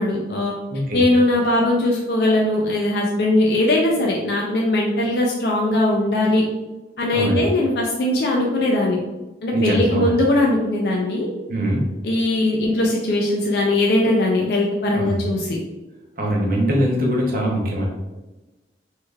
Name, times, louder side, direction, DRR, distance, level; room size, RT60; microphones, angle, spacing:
voice 1, 0.0-0.5 0.9-6.4 7.0-9.0 9.4-11.3 12.0-15.6, left 1 dB, 60° left, -1 dB, 0.4 m, -20 dB
voice 2, 0.7-1.0 7.1-7.4 9.5-10.1 11.5-11.9 14.9-15.2 16.2-17.9, equal, 50° right, -2 dB, 0.7 m, -22 dB
3.2 x 3.1 x 2.3 m, 1.1 s
head